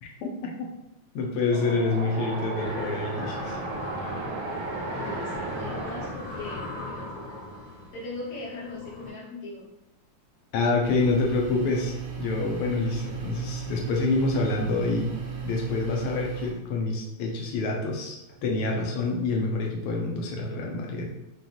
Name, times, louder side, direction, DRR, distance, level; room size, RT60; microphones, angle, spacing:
voice 1, 0.0-0.5 1.1-3.6 10.5-15.1 15.4-21.1, left 3 dB, 85° left, 0 dB, 1.6 m, -27 dB
Wind, 1.5-6.1, right 3 dB, 80° right, 1.4 m, -35 dB
sound 1, 2.5-9.1, left 2 dB, 60° left, 2.2 m, -38 dB
voice 2, 5.0-9.7, left 3 dB, 45° left, -5 dB, 1.2 m, -39 dB
sound 2, 10.8-16.5, right 7 dB, 55° right, 0.8 m, -35 dB
5.1 x 2.3 x 2.9 m, 0.87 s
omnidirectional pair, 2.4 m